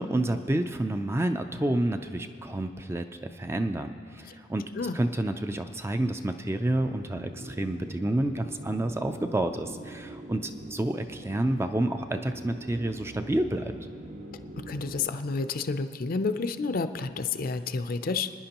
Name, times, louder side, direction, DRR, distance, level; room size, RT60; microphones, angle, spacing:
voice 1, 0.0-4.6 4.9-13.7, right 1 dB, 15° right, 7 dB, 0.4 m, -29 dB
sound 1, 6.8-15.1, right 2 dB, 45° right, 0.7 m, -44 dB
voice 2, 14.6-18.3, left 4 dB, 50° left, 10 dB, 0.5 m, -30 dB
27.0 x 10.0 x 2.9 m, 2.5 s
head